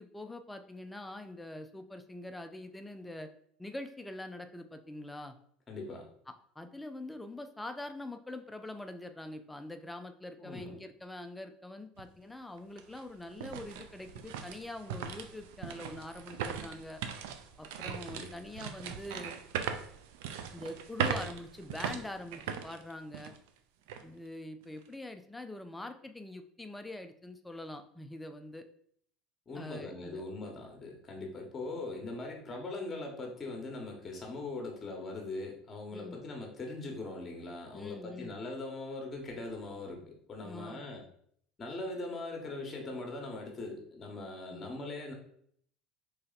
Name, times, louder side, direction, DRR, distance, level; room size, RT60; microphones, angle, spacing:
voice 1, 0.0-3.3 3.6-5.4 6.6-17.0 17.6-19.4 20.5-23.3 24.0-28.6 29.5-30.2 31.8-31.9 35.9-36.2 37.7-38.4 40.4-40.8 44.5-44.7, left 1 dB, 10° left, 7 dB, 0.4 m, -44 dB
voice 2, 5.7-6.1 10.4-10.8 18.1-18.3 29.5-41.0 41.6-45.1, left 2 dB, 25° left, 1 dB, 1.1 m, -41 dB
sound 1, 12.0-12.1 12.6-23.5 23.9-24.0 24.6-24.9, right 7 dB, 85° right, 0.4 m, -39 dB
3.2 x 2.8 x 3.9 m, 0.65 s
supercardioid pair, 110°, 0 cm